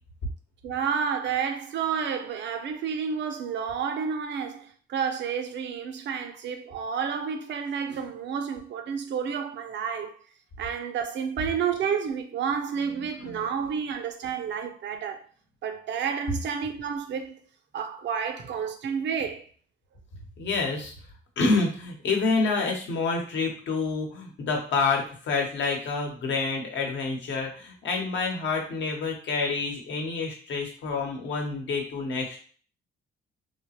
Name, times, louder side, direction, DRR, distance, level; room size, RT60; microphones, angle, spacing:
voice 1, 0.6-10.1 10.6-15.2 15.6-17.4 17.7-19.4, right 7 dB, 65° right, 0.5 m, -30 dB
voice 2, 13.2-13.5 20.4-20.9 21.4-32.4, left 4 dB, 70° left, 1.0 m, -28 dB
3.3 x 2.0 x 2.8 m
cardioid pair, 90°, 20 cm